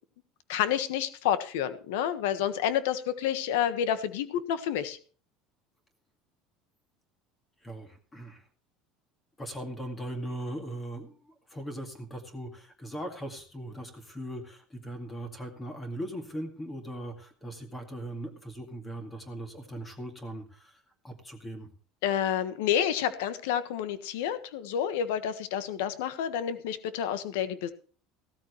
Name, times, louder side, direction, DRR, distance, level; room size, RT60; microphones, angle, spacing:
voice 1, 0.5-5.0 22.0-27.7, left 9 dB, 90° left, 12 dB, 1.4 m, -29 dB
voice 2, 7.6-8.5 9.4-21.7, right 1 dB, 15° left, 5 dB, 2.2 m, -39 dB
16.0 x 13.5 x 3.1 m, 0.41 s
cardioid pair, 160°, 0 cm